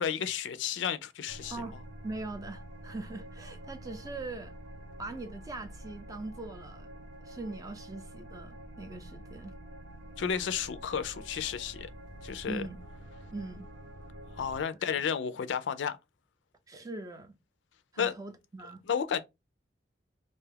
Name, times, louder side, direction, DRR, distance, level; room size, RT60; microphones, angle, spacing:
voice 1, 0.0-1.6 10.2-11.9 12.2-12.7 14.3-16.0 18.0-18.1 18.9-19.2, left 7 dB, 80° left, 0.4 m, -32 dB
sound 1, 1.3-14.6, right 1 dB, 85° right, 0.8 m, -47 dB
voice 2, 2.0-4.5 5.0-6.9 7.2-9.6 12.5-12.8 13.3-13.7 14.9-15.0 16.7-17.4 17.9-18.8, right 2 dB, 20° right, 0.4 m, -41 dB
2.5 x 2.3 x 3.3 m
head